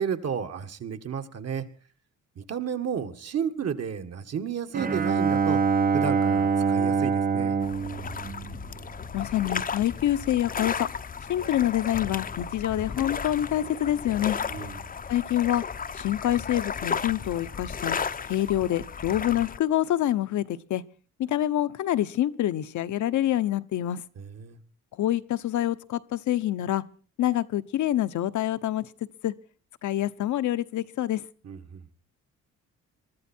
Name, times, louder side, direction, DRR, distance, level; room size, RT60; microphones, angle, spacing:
voice 1, 0.0-1.6 2.4-5.6 5.9-7.6 14.5-14.8 24.2-24.6 31.4-31.8, right 7 dB, 55° right, 1.9 m, -32 dB
Bowed string instrument, 4.7-9.1, right 5 dB, 30° right, 0.8 m, -25 dB
sound 1, 7.6-19.6, left 6 dB, 30° left, 0.7 m, -34 dB
voice 2, 9.1-10.9 11.3-14.4 15.1-15.6 16.0-18.0 18.2-20.8 21.2-24.0 25.0-26.8 27.2-28.9 29.2-29.3 29.8-31.2, left 12 dB, 75° left, 1.0 m, -26 dB
23.0 x 13.5 x 4.5 m
cardioid pair, 90°, 30 cm